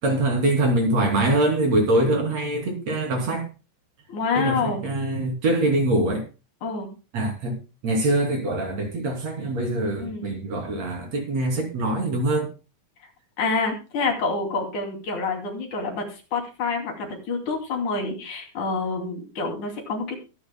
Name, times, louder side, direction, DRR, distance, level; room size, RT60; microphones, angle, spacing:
voice 1, 0.0-3.5 4.4-6.3 7.1-12.5, right 1 dB, 60° right, 4.2 m, -24 dB
voice 2, 4.1-4.8 6.6-6.9 9.9-10.3 13.4-20.2, left 4 dB, 80° left, 4.3 m, -27 dB
22.5 x 10.0 x 2.2 m
omnidirectional pair, 3.4 m